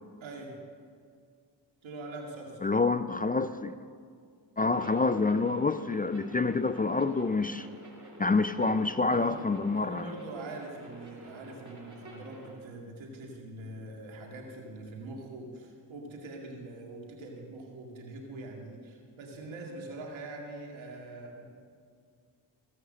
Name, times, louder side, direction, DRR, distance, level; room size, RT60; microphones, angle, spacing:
voice 1, 0.2-0.6 1.8-2.7 9.1-9.4 9.7-21.5, right 2 dB, 85° right, 0 dB, 2.2 m, -43 dB
voice 2, 2.6-3.8 4.6-7.7 8.2-10.1, left 3 dB, 20° left, 11 dB, 0.3 m, -27 dB
sound 1, 4.7-12.5, right 2 dB, 40° right, 3.1 m, -49 dB
16.0 x 5.8 x 7.5 m, 2.1 s
cardioid pair, 55°, 46 cm